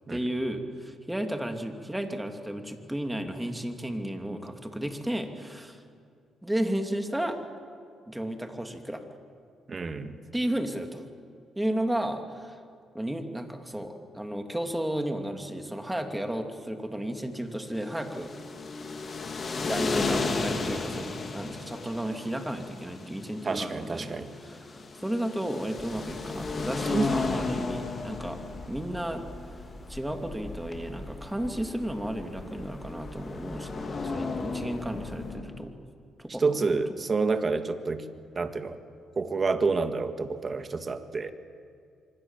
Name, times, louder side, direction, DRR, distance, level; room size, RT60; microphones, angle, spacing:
voice 1, 0.1-5.8 6.4-7.4 8.1-9.0 10.3-11.0 11.6-12.6 12.9-18.3 19.6-28.4 28.7-29.2 29.9-35.7 36.2-36.8, right 1 dB, 5° right, 5 dB, 2.7 m, -33 dB
voice 2, 9.7-10.2 23.4-24.3 26.9-27.1 36.4-38.1 38.3-38.8 39.1-41.3, right 4 dB, 35° right, 8 dB, 1.8 m, -28 dB
sound 1, 17.7-35.6, left 3 dB, 40° left, 3.3 m, -34 dB
sound 2, 25.8-35.4, left 1 dB, 25° left, 4.2 m, -45 dB
26.0 x 24.5 x 7.5 m, 2.3 s
cardioid pair, 90°, 0 cm